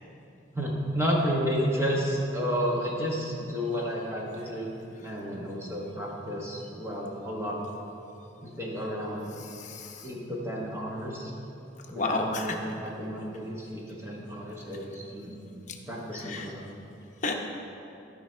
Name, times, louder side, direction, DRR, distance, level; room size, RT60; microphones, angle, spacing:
voice 1, 0.5-4.7 5.0-7.6 8.4-9.3 10.0-11.3 11.9-15.4 15.9-16.6, equal, 15° right, -3 dB, 1.1 m, -31 dB
voice 2, 9.3-10.1 11.9-12.6 15.7-15.8 16.1-16.5 17.2-17.5, left 3 dB, 40° left, 1 dB, 0.8 m, -32 dB
14.5 x 5.3 x 4.4 m, 2.8 s
head